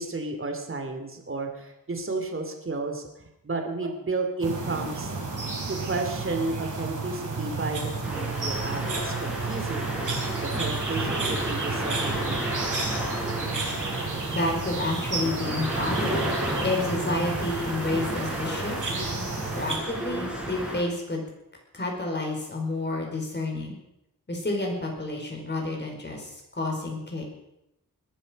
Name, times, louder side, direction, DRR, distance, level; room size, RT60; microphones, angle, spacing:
voice 1, 0.0-5.1 5.7-12.6, right 3 dB, 35° right, 4 dB, 2.6 m, -32 dB
sound 1, 4.4-19.8, right 4 dB, 60° right, 4.3 m, -32 dB
sound 2, 8.0-20.8, right 1 dB, 5° right, 5.0 m, -32 dB
voice 2, 14.3-16.4 16.6-18.8 19.5-21.2 21.7-23.7 24.3-27.2, left 2 dB, 30° left, 1 dB, 4.8 m, -30 dB
21.0 x 12.5 x 5.2 m, 0.85 s
wide cardioid pair, 130°, 35 cm